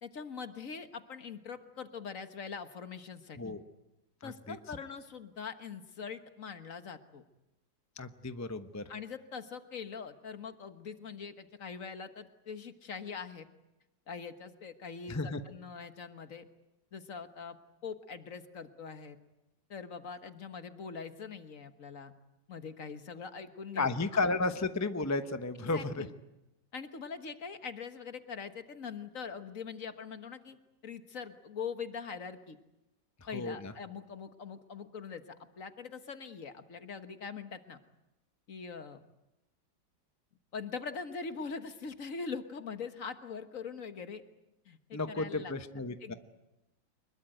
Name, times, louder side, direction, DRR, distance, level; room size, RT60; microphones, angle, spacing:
voice 1, 0.0-3.5 4.2-7.2 8.9-13.5 14.1-16.5 16.9-17.6 17.8-19.2 19.7-22.1 22.5-23.9 25.6-26.1 26.7-30.6 30.8-32.6 33.3-35.2 35.6-37.8 38.5-39.0 40.5-44.2 44.6-45.5 46.0-46.1, left 5 dB, 45° left, 9 dB, 1.6 m, -42 dB
voice 2, 4.2-4.6 8.0-8.8 15.1-15.4 23.8-26.0 33.3-33.7 44.9-46.1, left 3 dB, 20° left, 10 dB, 0.4 m, -33 dB
25.0 x 22.0 x 9.2 m, 0.95 s
omnidirectional pair, 2.1 m